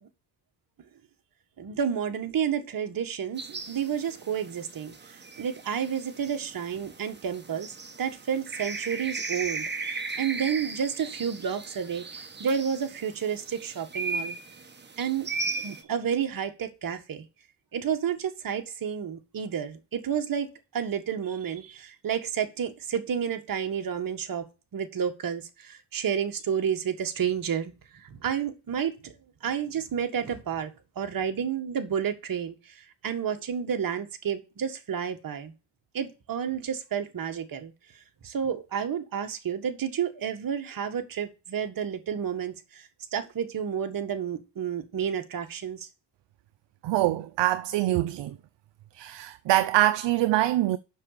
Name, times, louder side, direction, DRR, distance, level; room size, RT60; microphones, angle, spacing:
voice 1, 1.6-7.7 8.0-14.4 15.0-17.3 17.7-24.5 24.7-29.1 29.4-35.5 35.9-37.7 38.2-45.9, right 8 dB, 45° right, 1.9 m, -31 dB
sound 1, 3.4-15.8, right 3 dB, 20° right, 1.5 m, -37 dB
voice 2, 46.8-48.4 48.9-50.8, right 15 dB, 65° right, 0.7 m, -24 dB
7.5 x 6.2 x 6.7 m
cardioid pair, 95°, 47 cm